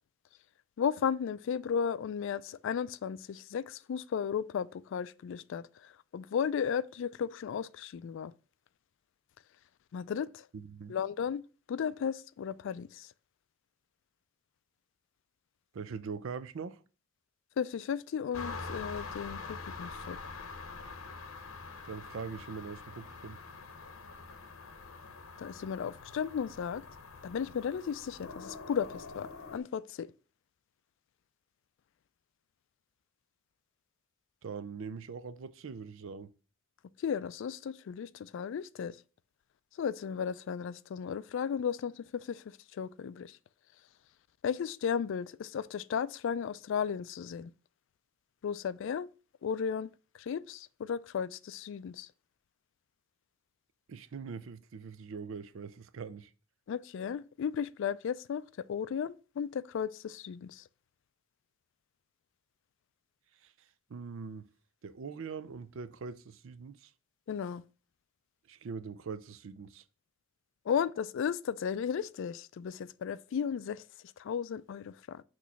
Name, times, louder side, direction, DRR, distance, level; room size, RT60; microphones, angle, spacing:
voice 1, 0.8-8.3 9.9-10.5 10.9-11.4 11.7-13.1 17.6-20.2 25.4-26.8 27.2-30.1 37.0-39.0 39.8-43.4 44.4-47.5 48.4-49.1 49.4-49.9 50.2-52.1 56.7-58.4 58.7-60.6 67.3-67.6 70.7-73.8 74.2-75.2, left 7 dB, 65° left, 0.3 m, -35 dB
voice 2, 10.5-11.0 15.7-16.8 21.8-23.4 34.4-36.3 53.9-56.3 63.4-63.5 63.9-64.5 64.8-66.9 68.5-69.8, right 5 dB, 65° right, 0.5 m, -42 dB
sound 1, 18.3-29.6, left 4 dB, 85° left, 0.8 m, -45 dB
6.1 x 3.1 x 5.6 m
head